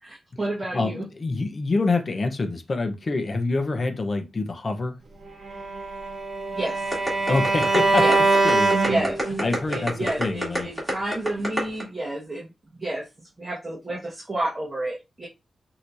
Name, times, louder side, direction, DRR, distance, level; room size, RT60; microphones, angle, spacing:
voice 1, 0.0-1.0 6.5-6.9 8.0-8.1 8.9-9.3 9.7-13.0 13.4-15.3, right 1 dB, 25° right, 1.4 m, -30 dB
voice 2, 0.7-5.0 7.3-8.1 8.4-9.0 9.4-10.7, left 3 dB, 35° left, 0.8 m, -26 dB
Bowed string instrument, 5.4-9.6, right 3 dB, 45° right, 1.0 m, -23 dB
sound 1, 6.9-11.8, equal, 10° right, 2.7 m, -27 dB
6.2 x 2.9 x 2.7 m
wide cardioid pair, 140°, 0 cm